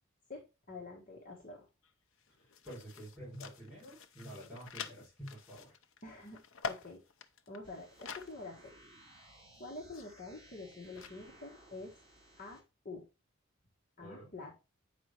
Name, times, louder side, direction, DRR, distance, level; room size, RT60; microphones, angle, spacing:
voice 1, 0.3-1.7 6.0-6.4 6.7-7.0 7.5-8.7 9.6-11.9 12.4-13.1 14.0-14.5, left 2 dB, 40° left, -1 dB, 1.5 m, -47 dB
sound 1, 1.5-1.6 1.8-8.4 8.7-8.8 9.5-11.1, left 5 dB, 80° left, 0.7 m, -47 dB
voice 2, 2.3-5.7 14.0-14.3, equal, 5° right, -9 dB, 5.0 m, -49 dB
sound 2, 7.6-12.6, right 1 dB, 25° right, 4.4 m, -59 dB
8.4 x 5.3 x 3.0 m, 0.27 s
head